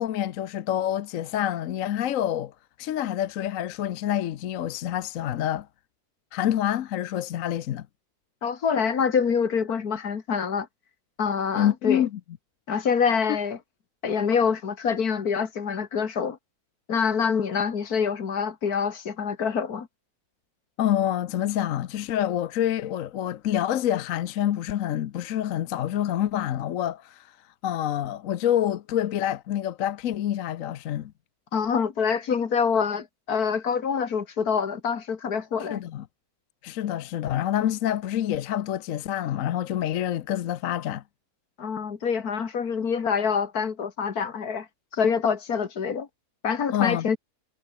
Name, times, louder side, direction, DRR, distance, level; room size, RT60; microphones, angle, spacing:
voice 1, 0.0-2.5 2.8-5.7 6.3-7.9 11.5-12.1 20.8-27.3 27.6-31.1 35.7-36.0 36.6-41.0 46.7-47.1, left 11 dB, 65° left, 1.1 m, -27 dB
voice 2, 8.4-10.7 11.2-12.1 12.7-13.6 14.0-16.4 16.9-19.9 31.5-35.8 41.6-44.7 44.9-46.1 46.4-47.2, left 6 dB, 80° left, 2.3 m, -26 dB
omnidirectional pair, 1.6 m